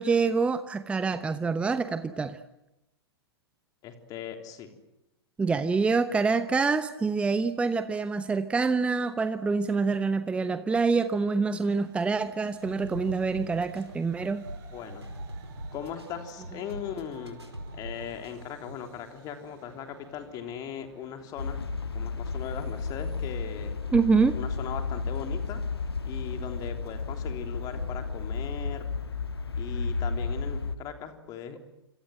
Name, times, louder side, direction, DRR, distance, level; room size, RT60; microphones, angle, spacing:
voice 1, 0.0-2.4 5.4-14.5 23.9-24.4, right 4 dB, 10° right, 12 dB, 0.9 m, -26 dB
voice 2, 3.8-4.7 14.7-15.0 15.7-17.4 17.7-23.7 24.3-25.6 26.0-28.8 29.6-31.6, left 8 dB, 30° left, 6 dB, 3.5 m, -39 dB
Train, 11.5-25.0, right 5 dB, 45° right, 7.9 m, -56 dB
sound 1, 12.5-18.8, right 1 dB, 90° right, 4.9 m, -42 dB
sound 2, 21.4-30.8, left 4 dB, 70° left, 1.6 m, -33 dB
27.0 x 26.0 x 7.9 m, 0.90 s
figure-of-eight pair, 105°, 13 cm